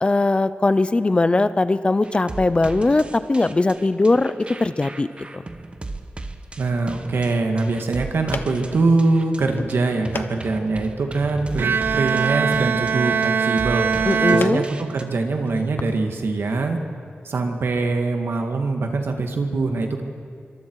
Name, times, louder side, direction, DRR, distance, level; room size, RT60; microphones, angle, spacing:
voice 1, 0.0-4.3 4.6-5.1 5.3-5.4 14.1-14.6, left 2 dB, 30° left, 14 dB, 0.6 m, -19 dB
sound 1, 2.0-15.0, right 2 dB, 30° right, 1.1 m, -37 dB
voice 2, 6.6-13.9 14.3-16.8 17.2-20.0, right 3 dB, 85° right, 4 dB, 2.1 m, -23 dB
sound 2, 7.5-16.0, left 4 dB, 65° left, 1.0 m, -39 dB
Bowed string instrument, 11.6-15.3, right 6 dB, 65° right, 0.5 m, -22 dB
26.5 x 24.0 x 4.8 m, 2.3 s
wide cardioid pair, 135°, 4 cm